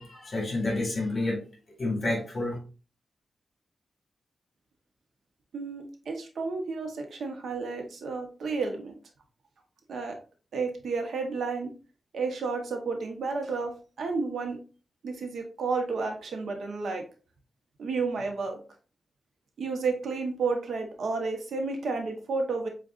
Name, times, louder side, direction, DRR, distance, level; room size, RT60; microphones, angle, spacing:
voice 1, 0.0-1.4 1.8-2.6, left 2 dB, 40° left, -1 dB, 2.3 m, -29 dB
voice 2, 5.5-8.9 9.9-10.2 10.5-11.7 12.1-14.6 15.0-17.0 17.8-18.6 19.6-22.7, right 4 dB, 85° right, 3 dB, 1.1 m, -31 dB
7.5 x 2.5 x 2.5 m, 0.35 s
wide cardioid pair, 110°, 0 cm